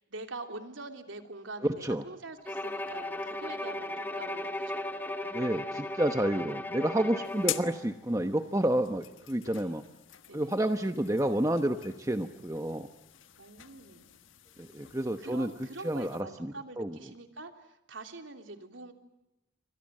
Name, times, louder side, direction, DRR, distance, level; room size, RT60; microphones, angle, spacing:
voice 1, 0.1-5.4 7.4-7.9 9.5-9.8 10.3-10.6 13.4-14.1 15.2-18.9, right 3 dB, 80° right, 6 dB, 3.2 m, -45 dB
Bowed string instrument, 2.4-7.8, left 1 dB, 10° left, 1.8 m, -36 dB
voice 2, 5.3-9.8 10.3-12.9 14.6-15.5 15.8-17.0, right 1 dB, 15° right, 7 dB, 1.0 m, -30 dB
sound 1, 7.2-16.2, left 13 dB, 90° left, 1.5 m, -44 dB
28.5 x 24.5 x 7.6 m, 0.96 s
head